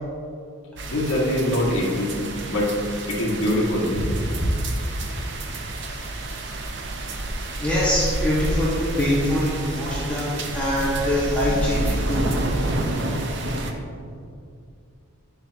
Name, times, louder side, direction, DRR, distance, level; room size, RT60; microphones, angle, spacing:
sound 1, 0.8-13.7, right 1 dB, 55° right, 0.8 m, -29 dB
voice 1, 0.9-2.1 2.5-2.7 3.1-3.9, left 1 dB, 65° left, -5 dB, 1.9 m, -23 dB
voice 2, 7.6-12.3, left 1 dB, 5° left, -10 dB, 1.7 m, -24 dB
10.0 x 7.2 x 3.0 m, 2.4 s
head